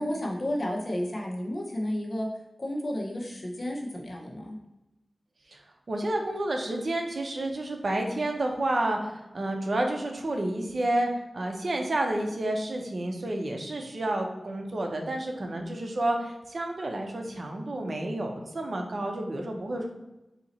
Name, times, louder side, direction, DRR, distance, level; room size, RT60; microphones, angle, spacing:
voice 1, 0.0-2.3 2.6-4.6, left 1 dB, 50° left, -1 dB, 0.9 m, -32 dB
voice 2, 5.9-19.9, right 1 dB, 55° right, 2 dB, 0.7 m, -30 dB
4.0 x 2.9 x 4.1 m, 0.97 s
wide cardioid pair, 95°, 0 cm